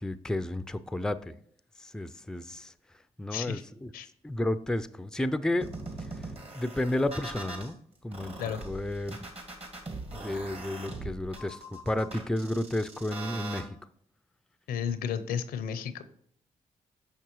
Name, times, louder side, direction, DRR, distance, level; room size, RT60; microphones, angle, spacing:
voice 1, 0.0-1.3 1.8-2.7 3.2-3.9 4.2-5.7 6.5-7.8 8.0-8.4 8.6-9.2 10.1-13.8, left 1 dB, 5° left, 13 dB, 0.4 m, -32 dB
voice 2, 3.3-3.6 3.9-4.1 8.4-8.6 14.7-16.0, left 8 dB, 80° left, 12 dB, 0.6 m, -32 dB
sound 1, 5.6-7.7 8.1-13.6, right 2 dB, 40° right, 1.8 m, -41 dB
6.6 x 5.9 x 3.0 m, 0.65 s
supercardioid pair, 50°, 15 cm